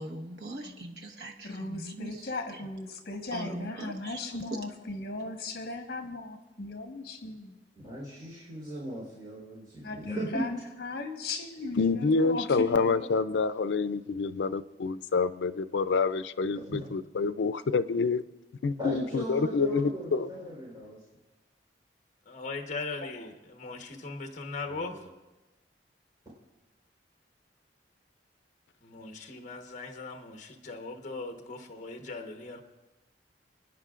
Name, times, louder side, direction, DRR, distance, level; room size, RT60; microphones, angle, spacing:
voice 1, 0.0-2.3 2.5-2.6 3.3-4.2 4.5-4.6, right 1 dB, 70° right, 2 dB, 1.2 m, -40 dB
voice 2, 1.4-7.6 9.8-13.1 23.0-23.3, left 2 dB, 60° left, 4 dB, 1.4 m, -37 dB
voice 3, 7.8-10.4 16.5-16.8 18.8-21.0 24.7-25.1, right 1 dB, 25° right, -6 dB, 4.0 m, -38 dB
voice 4, 11.8-18.2 18.6-20.3, left 4 dB, 85° left, 14 dB, 0.5 m, -27 dB
voice 5, 22.3-25.0 28.8-32.6, left 3 dB, 45° left, 5 dB, 1.1 m, -39 dB
29.5 x 10.0 x 2.5 m, 1.1 s
head